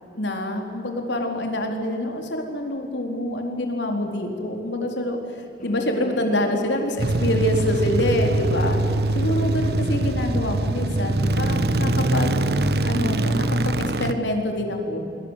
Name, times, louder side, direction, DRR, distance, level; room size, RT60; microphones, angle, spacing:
voice 1, 0.2-5.2 5.6-8.8 9.1-12.4 12.8-15.0, left 1 dB, 90° left, 4 dB, 4.2 m, -26 dB
sound 1, 5.6-10.8, left 1 dB, 45° left, 5.8 m, -41 dB
sound 2, 7.0-14.1, right 2 dB, 65° right, 1.1 m, -23 dB
25.5 x 24.5 x 8.3 m, 2.7 s
head